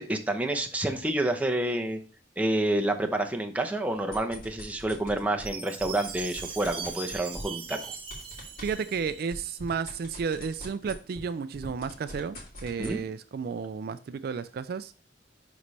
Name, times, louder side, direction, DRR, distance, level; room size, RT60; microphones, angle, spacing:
voice 1, 0.0-2.0 2.4-7.9 12.8-13.0, right 1 dB, 10° right, 0.8 m, -29 dB
sound 1, 4.0-5.5 5.8-11.3 11.5-13.0, equal, 50° left, 2.6 m, -43 dB
Chime, 5.5-9.6, right 5 dB, 30° right, 1.2 m, -40 dB
voice 2, 8.6-15.0, right 6 dB, 55° right, 0.3 m, -33 dB
11.0 x 4.1 x 3.2 m
head